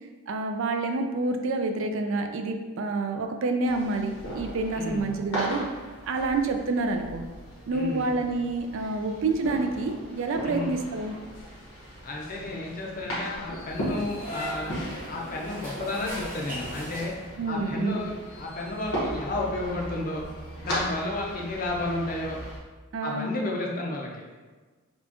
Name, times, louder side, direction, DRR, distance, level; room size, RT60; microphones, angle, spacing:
voice 1, 0.3-5.7 6.1-7.2 7.7-11.1 17.4-18.1 22.9-23.3, right 3 dB, 60° right, 5 dB, 0.3 m, -28 dB
sound 1, 3.6-22.6, equal, 90° left, 1.3 m, -37 dB
voice 2, 4.7-5.1 7.7-8.1 10.4-10.8 12.0-14.7 15.1-17.1 17.5-20.2 20.6-22.4 23.0-24.3, left 2 dB, 40° left, -1 dB, 0.5 m, -32 dB
sound 2, 13.7-17.6, equal, 40° right, 1.1 m, -39 dB
4.2 x 2.3 x 2.9 m, 1.3 s
head